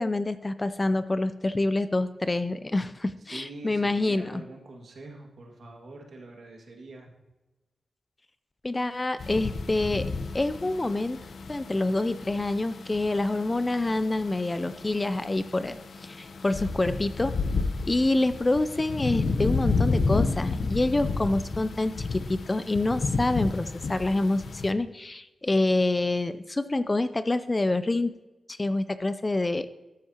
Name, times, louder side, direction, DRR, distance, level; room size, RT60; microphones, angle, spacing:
voice 1, 0.0-4.4 8.6-10.1 10.3-11.2 11.5-17.4 17.8-28.1 28.5-29.7, left 2 dB, 20° left, 12 dB, 0.4 m, -27 dB
voice 2, 3.2-7.1, right 2 dB, 65° right, 1 dB, 1.9 m, -44 dB
sound 1, 9.2-24.7, left 4 dB, 65° left, 0.7 m, -31 dB
13.5 x 9.7 x 2.9 m, 1.0 s
wide cardioid pair, 140°, 0 cm